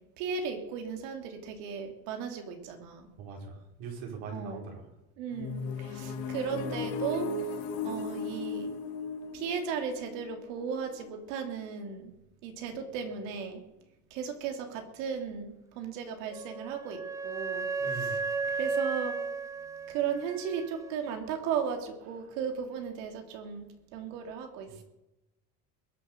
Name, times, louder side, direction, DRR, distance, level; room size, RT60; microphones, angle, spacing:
voice 1, 0.2-3.1 4.3-4.7 5.2-8.7 9.3-12.1 12.4-13.6 14.1-18.2 18.5-19.2 19.9-23.6 23.9-24.8, right 7 dB, 80° right, 4 dB, 3.2 m, -36 dB
voice 2, 3.2-4.8 17.8-18.2 22.2-22.3 24.7-24.8, right 4 dB, 65° right, 1 dB, 5.0 m, -41 dB
sound 1, 5.3-11.1, left 4 dB, 70° left, 3.4 m, -36 dB
Wind instrument woodwind instrument, 16.3-21.0, right 4 dB, 10° right, 0.7 m, -34 dB
21.5 x 7.2 x 6.7 m, 0.93 s
cardioid pair, 135°, 38 cm